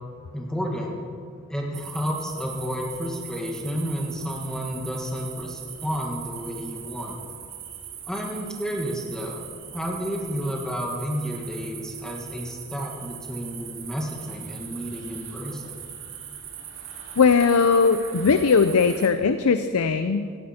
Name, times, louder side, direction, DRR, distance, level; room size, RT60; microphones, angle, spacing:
voice 1, 0.3-0.9 1.5-7.2 8.0-9.4 9.7-15.8, equal, 5° left, -1 dB, 1.6 m, -31 dB
sound 1, 1.7-19.1, right 8 dB, 65° right, 2.0 m, -40 dB
voice 2, 17.2-20.3, left 5 dB, 85° left, 10 dB, 0.5 m, -19 dB
16.5 x 16.0 x 4.3 m, 2.3 s
head